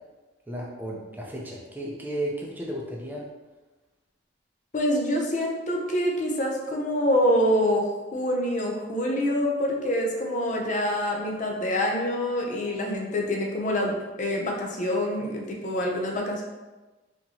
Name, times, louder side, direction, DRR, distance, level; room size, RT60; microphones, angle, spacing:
voice 1, 0.5-3.3, right 1 dB, 10° right, -3 dB, 0.5 m, -34 dB
voice 2, 4.7-16.4, equal, 45° left, 0 dB, 0.5 m, -26 dB
4.2 x 2.9 x 2.7 m, 1.2 s
head